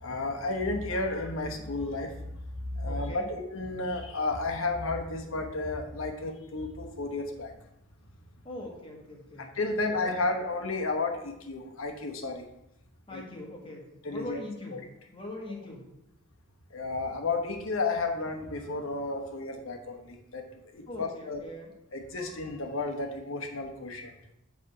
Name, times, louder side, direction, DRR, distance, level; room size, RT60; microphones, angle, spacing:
voice 1, 0.0-7.5 9.4-12.5 13.1-13.2 14.0-14.4 14.7-14.8 16.7-21.4 21.9-24.1, left 3 dB, 80° left, 3 dB, 1.0 m, -32 dB
voice 2, 2.9-3.3 8.4-9.5 9.9-10.2 13.1-14.8 15.1-15.8 20.9-21.7, left 1 dB, 25° left, -1 dB, 1.3 m, -41 dB
7.7 x 3.4 x 5.4 m, 0.84 s
head